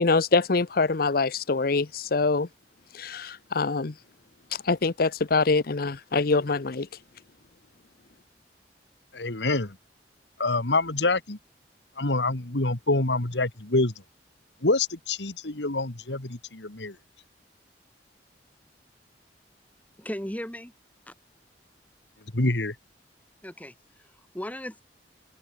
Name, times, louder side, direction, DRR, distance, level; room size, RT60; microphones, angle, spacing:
voice 1, 0.0-2.5 2.9-3.9 4.5-6.9, left 3 dB, 55° left, 0.8 m, -24 dB
voice 2, 9.1-9.8 10.4-11.4 12.0-13.9 14.6-17.0 22.3-22.8, left 2 dB, 80° left, 2.3 m, -26 dB
voice 3, 20.0-20.7 21.1-21.2 23.4-24.8, equal, 10° left, 2.4 m, -37 dB
open air
head